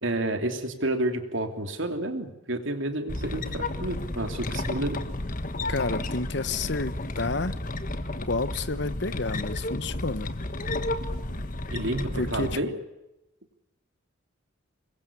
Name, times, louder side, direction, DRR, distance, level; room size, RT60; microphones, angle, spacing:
voice 1, 0.0-5.0 11.7-12.7, right 1 dB, 65° right, 3.0 m, -30 dB
sound 1, 3.1-12.6, left 2 dB, 40° left, 1.5 m, -32 dB
voice 2, 5.7-7.6 8.2-10.3 12.1-12.6, left 3 dB, 55° left, 1.1 m, -30 dB
26.0 x 22.0 x 6.9 m
head